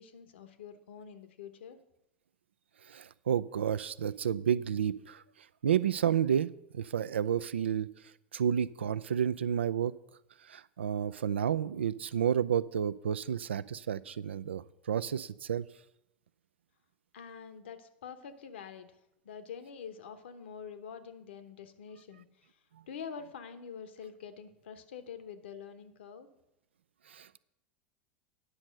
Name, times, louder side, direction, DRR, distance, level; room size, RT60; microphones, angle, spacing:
voice 1, 0.0-1.8 17.1-18.9 19.2-22.6 22.9-26.3, left 7 dB, 80° left, 10 dB, 1.0 m, -46 dB
voice 2, 2.9-5.2 5.6-7.9 8.3-9.9 10.5-15.7 27.1-27.4, right 8 dB, 85° right, 17 dB, 0.4 m, -31 dB
9.8 x 6.2 x 6.5 m, 0.87 s
hypercardioid pair, 85°, 6 cm